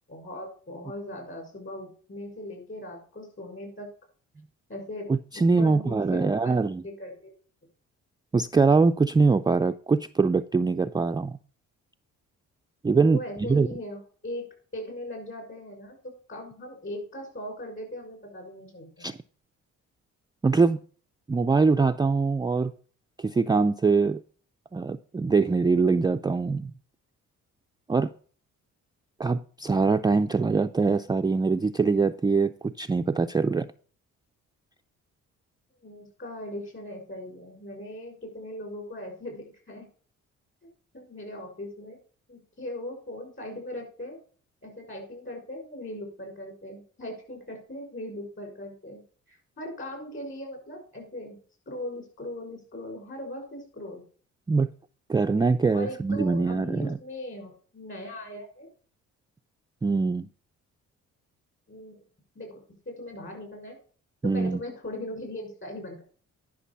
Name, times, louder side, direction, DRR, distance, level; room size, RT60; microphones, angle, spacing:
voice 1, 0.1-3.9 4.7-5.1 5.6-7.3 13.1-14.5 14.7-16.0 16.3-19.1 35.8-39.9 40.6-42.0 42.3-44.2 44.6-49.0 49.3-51.4 51.7-54.0 55.7-58.7 61.7-62.0 62.3-63.8 64.2-66.0, left 1 dB, 40° left, 2 dB, 6.1 m, -39 dB
voice 2, 5.1-6.8 8.3-11.4 12.8-13.2 13.5-13.7 19.0-19.2 20.4-20.8 21.3-22.7 23.2-24.2 24.7-26.7 27.9-28.1 29.2-33.7 54.5-54.7 55.1-57.0 59.8-60.3 64.2-64.6, right 4 dB, 15° right, 7 dB, 0.3 m, -23 dB
11.0 x 6.1 x 5.6 m, 0.44 s
cardioid pair, 90°, 30 cm